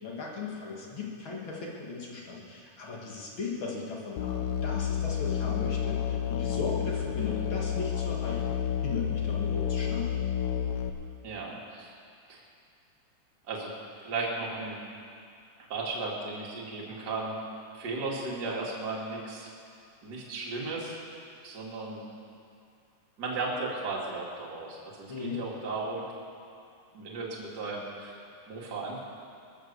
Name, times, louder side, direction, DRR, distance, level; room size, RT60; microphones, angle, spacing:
voice 1, 0.0-10.1 25.1-25.4, left 4 dB, 45° left, -3 dB, 2.3 m, -37 dB
Musical instrument, 4.2-10.9, left 9 dB, 70° left, 1.6 m, -30 dB
voice 2, 11.2-11.9 12.3-12.4 13.5-13.7 14.0-14.8 15.7-17.4 17.7-19.5 20.0-21.0 21.4-22.0 23.2-26.0 26.9-29.0, right 3 dB, 35° right, -3 dB, 2.4 m, -35 dB
20.5 x 7.3 x 6.7 m, 2.4 s
omnidirectional pair, 3.6 m